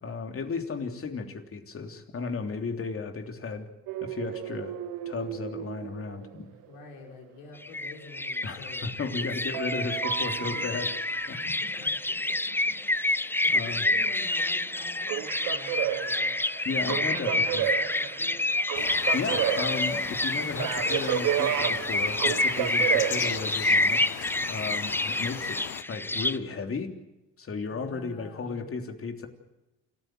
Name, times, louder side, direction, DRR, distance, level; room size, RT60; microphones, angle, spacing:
voice 1, 0.0-3.7 4.0-4.7 5.0-6.5 8.4-10.9 11.3-11.4 13.5-13.8 16.6-17.7 19.1-24.0 24.5-26.9 27.4-29.3, left 4 dB, 40° left, 5 dB, 3.3 m, -34 dB
sound 1, 3.9-6.7 9.5-11.3 14.9-23.8, right 12 dB, 70° right, 1.4 m, -32 dB
voice 2, 6.7-8.8 9.1-9.3 10.2-10.9 11.3-12.4 12.7-12.8 13.0-16.4 16.8-18.5 27.7-28.8, left 4 dB, 80° left, 0 dB, 6.1 m, -47 dB
sound 2, 7.6-26.4, left 2 dB, 5° left, 0.7 m, -28 dB
sound 3, 18.7-25.8, left 15 dB, 60° left, 0.9 m, -39 dB
29.0 x 14.0 x 7.8 m, 0.99 s
supercardioid pair, 75°, 35 cm